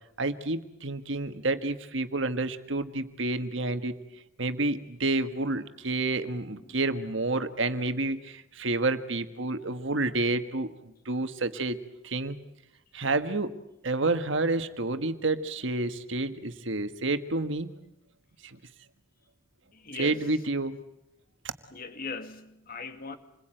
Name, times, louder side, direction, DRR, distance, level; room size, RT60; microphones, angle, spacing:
voice 1, 0.2-3.9 4.4-10.7 11.0-11.8 12.0-12.4 12.9-13.5 13.8-17.7 19.9-20.8, right 2 dB, 65° right, 1.6 m, -29 dB
voice 2, 19.7-20.3 21.7-23.2, left 4 dB, 45° left, 2.2 m, -40 dB
27.5 x 21.5 x 9.1 m
head